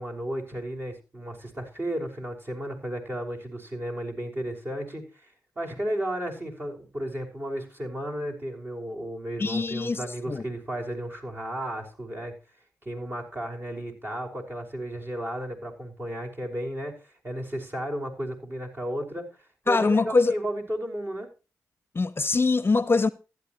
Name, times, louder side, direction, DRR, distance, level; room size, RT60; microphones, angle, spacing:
voice 1, 0.0-12.4 12.8-19.3 19.6-21.3, right 1 dB, 35° right, 5.7 m, -33 dB
voice 2, 9.4-10.4 19.7-20.3 21.9-23.1, left 3 dB, 35° left, 0.7 m, -23 dB
15.0 x 12.0 x 3.1 m
cardioid pair, 55°, 7 cm